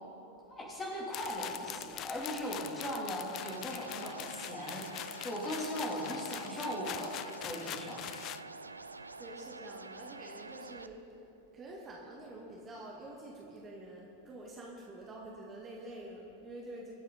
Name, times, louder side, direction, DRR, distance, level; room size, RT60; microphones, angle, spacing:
voice 1, 0.5-4.8 5.2-8.1, equal, 15° left, -3 dB, 3.3 m, -38 dB
sound 1, 1.1-8.4, left 13 dB, 35° left, 0.3 m, -44 dB
sound 2, 3.4-10.9, right 3 dB, 80° right, 0.4 m, -47 dB
voice 2, 9.2-16.9, right 1 dB, 25° right, -2 dB, 1.8 m, -47 dB
23.5 x 8.2 x 4.2 m, 2.9 s
figure-of-eight pair, 90°, 0 cm